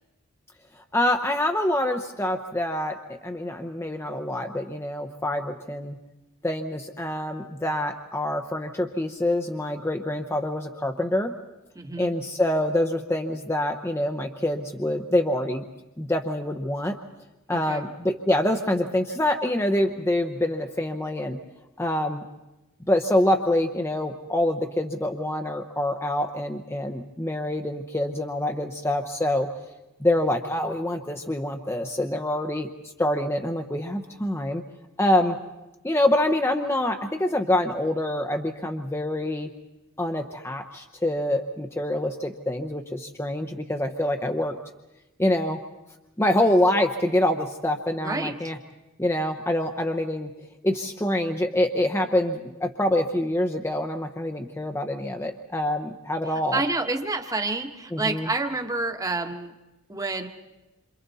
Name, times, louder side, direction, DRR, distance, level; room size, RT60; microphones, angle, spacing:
voice 1, 0.9-6.0 6.4-11.3 12.0-15.6 16.0-17.0 17.5-21.4 21.8-22.2 22.9-29.5 30.0-32.7 33.0-34.6 35.0-35.4 35.8-39.5 40.0-44.5 45.2-45.6 46.2-48.6 49.0-50.3 50.6-56.6 57.9-58.3, left 1 dB, 10° left, 5 dB, 0.8 m, -26 dB
voice 2, 11.7-12.1 17.5-17.8 48.0-48.5 56.3-59.5 59.9-60.3, right 3 dB, 15° right, 6 dB, 1.3 m, -29 dB
28.0 x 26.5 x 4.2 m, 1.0 s
head